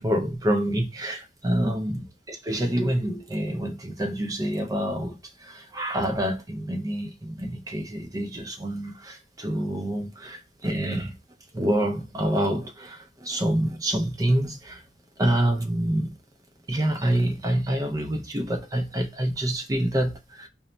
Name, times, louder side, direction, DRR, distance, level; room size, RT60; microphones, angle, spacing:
voice 1, 0.0-11.1 11.5-14.8 15.2-16.2 16.7-20.5, right 1 dB, 20° right, 0.4 m, -27 dB
2.1 x 2.1 x 3.8 m
head